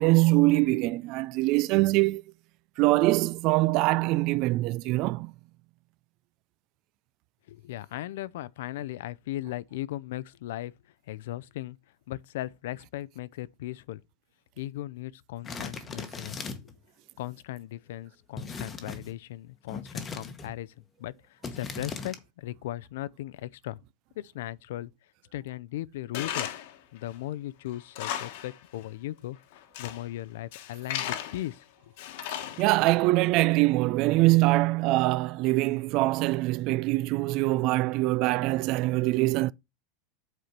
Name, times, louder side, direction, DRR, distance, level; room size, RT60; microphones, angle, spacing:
voice 1, 0.0-2.2 2.8-5.3 32.6-39.5, right 20 dB, 45° right, 0.3 m, -23 dB
voice 2, 7.5-10.7 11.1-11.8 12.1-14.0 14.6-16.7 17.2-23.8 24.2-24.9 25.3-26.5 26.9-31.9, left 15 dB, 75° left, 0.5 m, -38 dB
sound 1, 15.4-16.8 18.4-19.1 19.7-20.5 21.4-22.2, left 4 dB, 15° left, 1.0 m, -38 dB
Tools, 26.1-26.8 27.1-27.2 27.7-28.6 28.8-28.9 29.5-30.1 30.5-31.5 32.0-32.9, left 11 dB, 60° left, 1.1 m, -35 dB
8.1 x 4.4 x 5.1 m
supercardioid pair, 160°, 0 cm